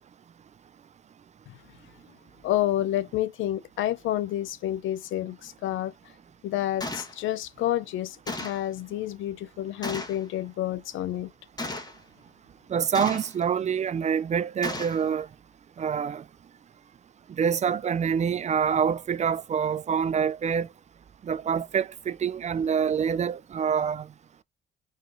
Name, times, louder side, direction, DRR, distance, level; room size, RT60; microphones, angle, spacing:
voice 1, 2.4-5.9 6.4-11.3, left 13 dB, 80° left, 0.5 m, -29 dB
Gunshot gunfire, 6.8-7.1 8.3-8.7 9.8-10.2 11.6-12.0 12.9-13.4 14.6-15.0, left 2 dB, 20° left, 1.3 m, -34 dB
voice 2, 12.7-15.3 15.8-16.2 17.4-20.7 21.3-24.1, right 7 dB, 35° right, 0.4 m, -26 dB
4.8 x 2.9 x 2.6 m
cardioid pair, 90°, 20 cm